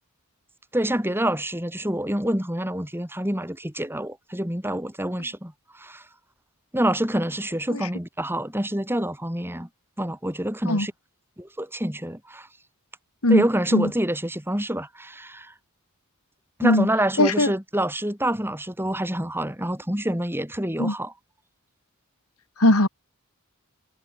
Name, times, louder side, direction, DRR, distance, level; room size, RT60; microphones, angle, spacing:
voice 1, 0.7-6.0 6.7-9.7 10.0-10.9 11.4-12.5 13.3-15.5 16.6-21.1, right 1 dB, 10° right, 6.5 m, -27 dB
voice 2, 17.2-17.5 20.8-20.9 22.6-22.9, left 1 dB, 75° left, 3.7 m, -19 dB
head